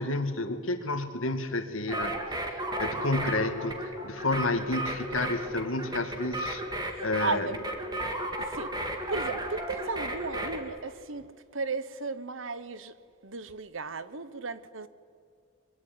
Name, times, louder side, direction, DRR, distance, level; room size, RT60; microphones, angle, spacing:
voice 1, 0.0-2.2 2.4-6.6 7.0-7.5, left 2 dB, 90° left, 2.3 m, -30 dB
sound 1, 1.9-10.6, right 1 dB, 20° right, 2.7 m, -34 dB
voice 2, 6.9-7.5 8.4-11.3 11.5-12.9 13.2-14.9, right 4 dB, 70° right, 1.2 m, -35 dB
24.5 x 23.5 x 9.5 m
head